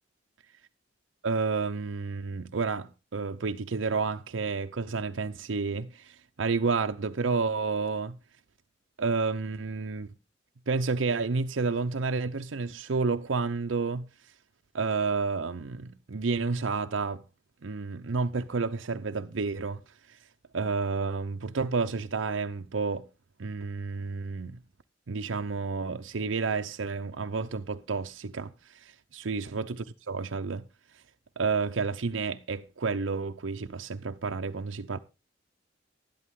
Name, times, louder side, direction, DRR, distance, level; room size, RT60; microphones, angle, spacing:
voice 1, 1.2-8.2 9.0-10.1 10.7-14.1 14.7-17.2 17.6-19.8 20.5-23.1 23.4-24.6 25.1-30.6 31.4-35.0, right 4 dB, 90° right, 0.7 m, -30 dB
12.0 x 11.0 x 3.7 m
head